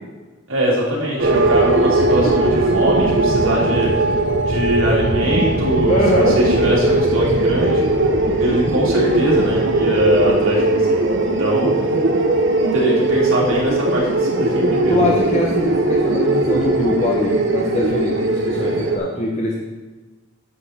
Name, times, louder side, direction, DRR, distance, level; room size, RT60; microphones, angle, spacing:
voice 1, 0.5-4.1 4.4-7.8 8.4-11.7 12.7-15.0, right 1 dB, 85° right, -4 dB, 3.0 m, -21 dB
sound 1, 1.2-19.0, right 2 dB, 60° right, 0.9 m, -19 dB
voice 2, 5.9-6.4 11.4-12.0 14.9-19.5, left 1 dB, 35° left, -2 dB, 0.9 m, -22 dB
9.6 x 7.6 x 4.3 m, 1.3 s
head